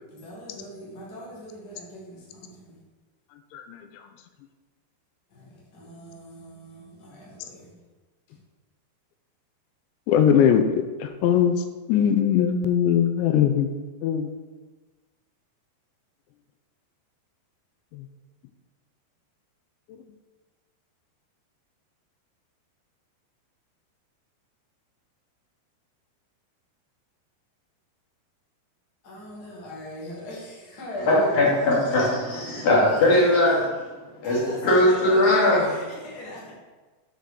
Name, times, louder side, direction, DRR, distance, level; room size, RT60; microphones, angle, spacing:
voice 1, 0.1-2.8 5.3-7.7 29.0-31.5 32.0-33.3 34.2-36.5, left 1 dB, 30° left, -5 dB, 2.0 m, -39 dB
voice 2, 10.1-11.6 11.9-13.7 14.0-14.3 17.9-18.1, left 8 dB, 90° left, 7 dB, 2.9 m, -21 dB
voice 3, 31.0-33.6 34.2-35.6, left 1 dB, 50° left, -5 dB, 3.3 m, -20 dB
8.0 x 4.8 x 6.5 m, 1.3 s
omnidirectional pair, 5.1 m